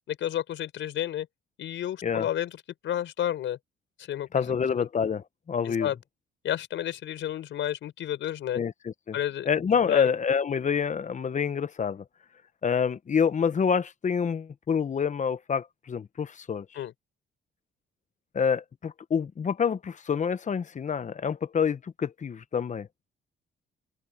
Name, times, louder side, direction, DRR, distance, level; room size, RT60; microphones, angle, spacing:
voice 1, 0.1-1.3 1.6-2.6 2.8-3.6 4.0-4.9 5.6-6.0 6.4-8.6 9.1-9.5 9.8-10.1 16.7-16.9, left 11 dB, 75° left, 4.8 m, -31 dB
voice 2, 4.3-5.9 8.5-9.2 9.4-12.0 12.6-16.7 18.3-22.9, left 6 dB, 40° left, 1.0 m, -27 dB
open air
cardioid pair, 90°, 20 cm